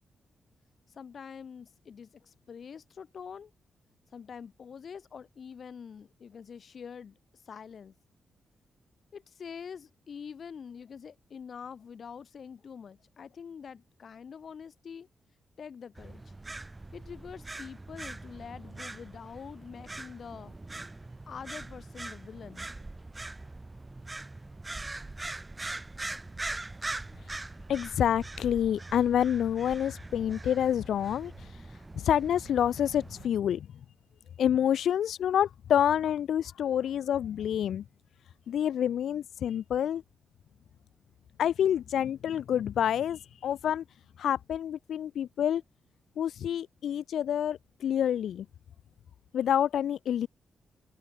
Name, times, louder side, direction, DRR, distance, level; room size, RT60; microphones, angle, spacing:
voice 1, 0.9-3.5 4.1-7.2 7.5-8.0 9.1-15.1 15.6-16.2 16.9-20.5 21.3-22.7, left 6 dB, 50° left, 7.2 m, -45 dB
sound 1, 15.9-33.3, right 2 dB, 15° right, 6.0 m, -42 dB
voice 2, 27.7-33.7 34.4-37.8 38.5-40.0 41.4-43.8 44.2-45.6 46.2-48.4 49.3-50.3, left 9 dB, 80° left, 1.0 m, -28 dB
wide cardioid pair, 135°, 0 cm